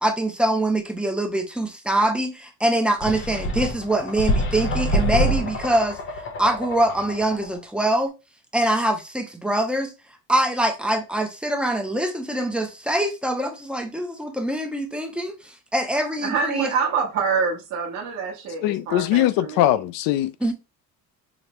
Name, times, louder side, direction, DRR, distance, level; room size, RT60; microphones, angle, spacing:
voice 1, 0.0-6.0 6.4-8.1 8.5-9.9 10.3-16.7 20.4-20.5, right 1 dB, 5° right, 0.5 m, -24 dB
sound 1, 3.0-7.6, equal, 35° left, 0.8 m, -26 dB
voice 2, 16.2-19.7, right 5 dB, 50° right, 1.0 m, -26 dB
voice 3, 18.6-20.3, left 13 dB, 75° left, 0.5 m, -21 dB
5.0 x 2.1 x 2.9 m
cardioid pair, 140°, 35 cm